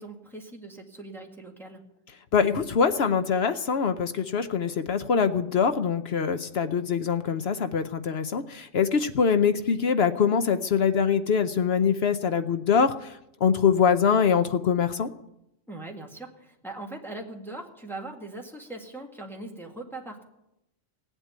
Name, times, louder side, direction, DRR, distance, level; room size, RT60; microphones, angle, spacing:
voice 1, 0.0-1.8 15.7-20.2, right 2 dB, ahead, 0 dB, 1.8 m, -40 dB
voice 2, 2.3-15.1, left 6 dB, 60° left, 10 dB, 0.9 m, -24 dB
17.5 x 8.1 x 9.2 m, 0.86 s
omnidirectional pair, 1.2 m